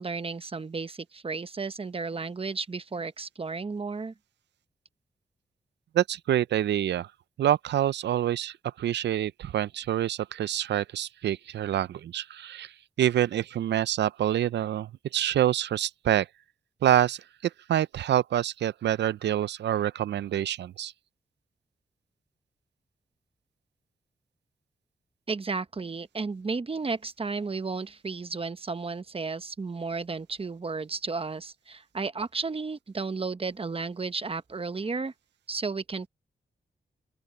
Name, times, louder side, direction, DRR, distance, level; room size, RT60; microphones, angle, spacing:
voice 1, 0.0-4.1 25.3-35.1 35.5-36.1, right 4 dB, 35° right, 1.0 m, -33 dB
voice 2, 5.9-7.1 7.4-12.7 13.0-16.3 16.8-20.9, right 11 dB, 85° right, 0.5 m, -26 dB
open air
cardioid pair, 75°, 18 cm